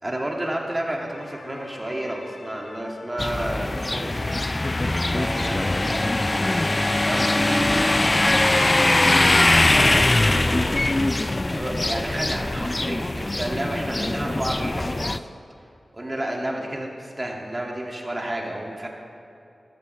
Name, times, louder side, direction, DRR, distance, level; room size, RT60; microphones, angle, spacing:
voice 1, 0.0-4.5 4.8-6.5 7.0-8.8 9.4-9.7 10.0-10.8 11.4-15.3 15.9-18.9, right 1 dB, 25° right, -1 dB, 2.2 m, -31 dB
sound 1, 1.1-10.0, left 3 dB, 65° left, 0.7 m, -43 dB
sound 2, 3.2-15.2, left 2 dB, 35° left, 0.4 m, -22 dB
voice 2, 16.4-16.8, left 1 dB, 85° left, -3 dB, 2.3 m, -42 dB
14.0 x 12.5 x 3.3 m, 2.7 s
cardioid pair, 45°, 0 cm